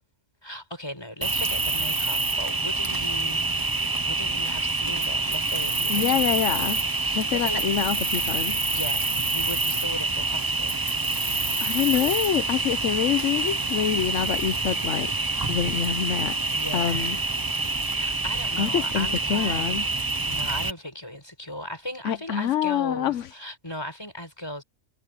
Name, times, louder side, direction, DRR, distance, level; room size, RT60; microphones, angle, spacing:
voice 1, 0.4-3.5 4.0-7.7 8.7-10.8 16.5-17.2 17.8-19.8 20.2-24.6, left 1 dB, 20° left, 5.9 m, -37 dB
Cricket, 1.2-20.7, right 3 dB, 20° right, 0.8 m, -26 dB
voice 2, 5.9-6.8 7.1-8.6 11.6-15.1 15.5-16.4 16.7-17.2 18.6-19.8 22.0-23.3, left 9 dB, 80° left, 1.1 m, -26 dB
omnidirectional pair, 1.3 m